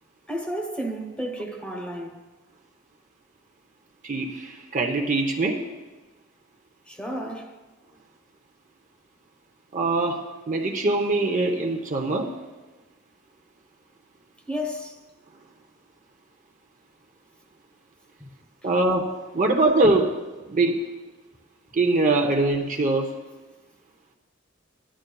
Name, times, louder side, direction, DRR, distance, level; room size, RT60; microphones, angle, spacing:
voice 1, 0.3-2.2 6.9-7.6 14.5-15.0 18.2-18.3, equal, 5° left, 1.1 m, -32 dB
voice 2, 4.0-5.6 9.7-12.3 18.6-20.2 20.5-20.8 21.7-23.1, right 2 dB, 40° right, 0.8 m, -23 dB
16.5 x 11.5 x 2.3 m
head